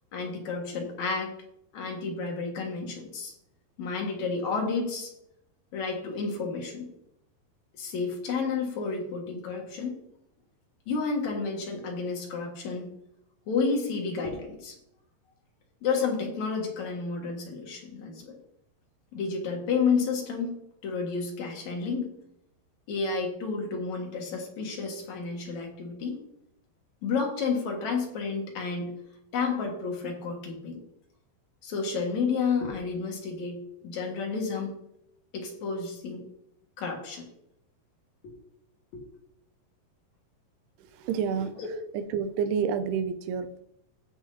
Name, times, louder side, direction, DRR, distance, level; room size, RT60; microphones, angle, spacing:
voice 1, 0.1-1.3 1.7-3.3 3.8-5.1 5.7-6.9 7.8-9.9 10.9-12.9 13.5-14.7 15.8-18.4 19.1-20.5 20.8-22.1 22.9-26.2 27.0-28.9 29.3-30.8 31.6-33.6 33.8-34.7 35.3-36.2 36.8-37.2 38.2-38.3 38.9-39.0 41.3-41.7, left 4 dB, 55° left, 1 dB, 2.7 m, -31 dB
voice 2, 40.8-41.5 41.9-43.6, right 7 dB, 90° right, 9 dB, 2.8 m, -29 dB
16.0 x 6.2 x 2.8 m, 0.78 s
omnidirectional pair, 4.6 m